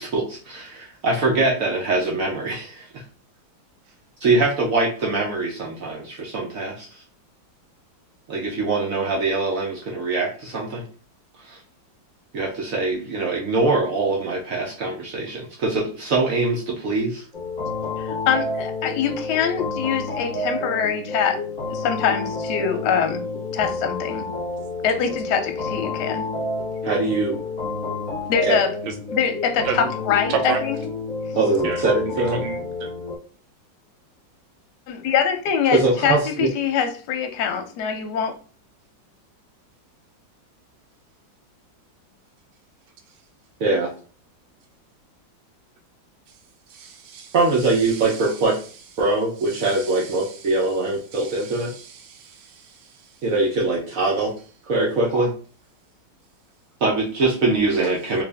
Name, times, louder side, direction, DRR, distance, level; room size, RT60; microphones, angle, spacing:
voice 1, 0.0-3.0 4.2-7.0 8.3-10.8 11.4-11.6 12.3-17.2 26.8-27.4 28.4-28.6 31.3-32.4 35.7-36.5 43.6-43.9 47.3-48.6 49.0-51.7 53.2-54.3 54.7-55.3 56.8-58.2, right 3 dB, 65° right, -1 dB, 0.8 m, -23 dB
sound 1, 17.3-33.2, left 3 dB, 25° left, 1.3 m, -29 dB
voice 2, 18.0-21.4 21.7-23.2 23.5-24.3 24.8-26.2 28.3-28.7 29.1-30.8 34.9-38.3, left 7 dB, 70° left, 5 dB, 1.1 m, -24 dB
voice 3, 30.3-30.6 31.6-32.9 46.7-48.6 49.5-50.7 51.1-53.2, right 6 dB, 90° right, 4 dB, 1.3 m, -33 dB
3.3 x 2.5 x 3.3 m, 0.39 s
omnidirectional pair, 2.1 m